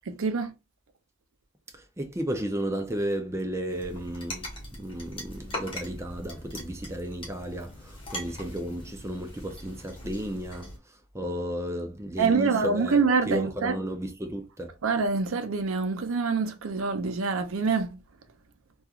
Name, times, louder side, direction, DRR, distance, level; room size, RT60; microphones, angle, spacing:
voice 1, 0.1-0.5 12.2-13.8 14.8-18.0, right 4 dB, 75° right, 0.5 m, -25 dB
voice 2, 1.7-4.5 4.8-10.7 11.1-13.0 13.3-14.7, right 1 dB, 15° right, 0.4 m, -33 dB
sound 1, 3.7-10.8, left 1 dB, 25° left, 0.9 m, -41 dB
2.9 x 2.3 x 2.4 m
head